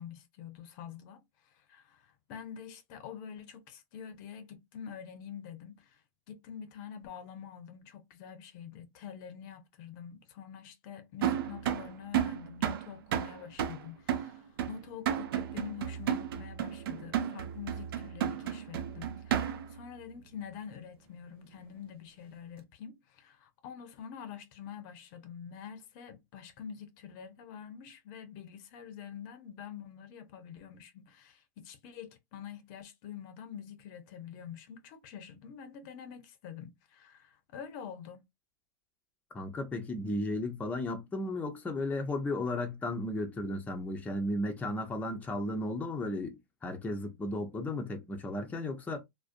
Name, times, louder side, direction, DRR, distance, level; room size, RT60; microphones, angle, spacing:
voice 1, 0.0-38.2, left 8 dB, 55° left, 0.6 m, -46 dB
sound 1, 11.2-19.8, right 9 dB, 70° right, 0.5 m, -33 dB
voice 2, 39.3-49.0, left 1 dB, 10° left, 0.5 m, -34 dB
2.5 x 2.1 x 2.5 m
hypercardioid pair, 120°, 12 cm